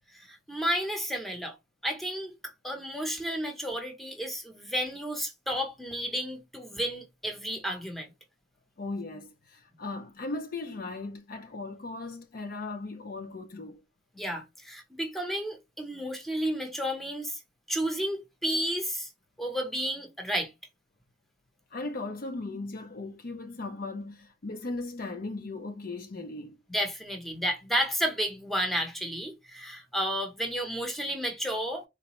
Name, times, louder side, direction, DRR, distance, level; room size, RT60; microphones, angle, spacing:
voice 1, 0.1-1.6 1.8-2.3 2.6-8.1 14.1-17.4 17.7-19.1 19.4-20.5 26.7-31.8, equal, ahead, 0.7 m, -32 dB
voice 2, 8.8-13.8 21.7-26.6, left 3 dB, 50° left, 0.5 m, -37 dB
3.9 x 2.1 x 2.9 m
head